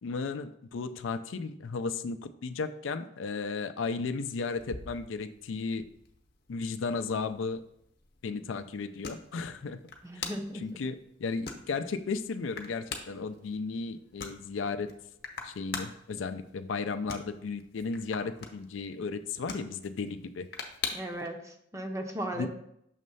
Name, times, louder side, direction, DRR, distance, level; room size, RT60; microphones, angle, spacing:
voice 1, 0.0-5.8 6.5-7.6 8.2-9.8 10.1-10.3 10.6-14.9 15.4-20.5 22.4-22.5, left 4 dB, 75° left, 10 dB, 0.4 m, -34 dB
sound 1, 4.6-21.3, left 5 dB, 55° left, 0.8 m, -45 dB
voice 2, 10.0-10.8 20.9-22.5, right 1 dB, 15° right, 4 dB, 0.6 m, -37 dB
6.5 x 3.1 x 5.3 m, 0.74 s
head